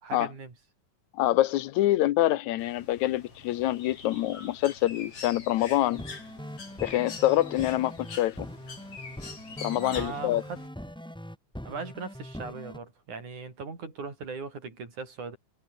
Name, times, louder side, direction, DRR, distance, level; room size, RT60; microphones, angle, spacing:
voice 1, 0.0-0.6 9.8-10.6 11.6-15.4, right 4 dB, 80° right, 7.0 m, -39 dB
voice 2, 1.2-6.0 6.8-8.5 9.6-10.4, left 15 dB, 75° left, 2.1 m, -26 dB
Bird, 2.6-10.7, left 4 dB, 50° left, 5.3 m, -45 dB
sound 1, 5.9-12.8, equal, 5° left, 1.1 m, -42 dB
omnidirectional pair, 3.4 m